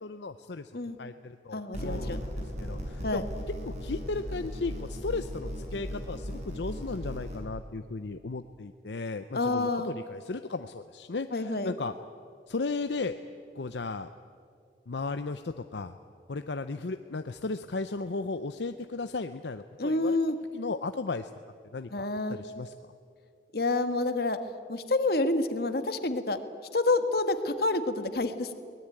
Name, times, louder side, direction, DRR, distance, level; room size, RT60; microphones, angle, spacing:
voice 1, 0.0-0.7 1.0-2.3 2.6-3.2 3.6-11.9 12.5-13.2 13.5-14.1 14.9-15.9 16.3-20.2 20.5-21.3 21.7-22.7, left 3 dB, 75° left, 9 dB, 0.7 m, -35 dB
voice 2, 1.5-2.2 3.0-3.2 9.3-9.9 11.3-11.7 19.8-20.4 21.9-22.4 23.5-24.4 24.7-26.4 26.7-28.5, left 2 dB, 60° left, 9 dB, 1.5 m, -28 dB
sound 1, 1.7-7.4, equal, 40° right, 5.7 m, -37 dB
23.0 x 19.0 x 9.0 m, 2.3 s
head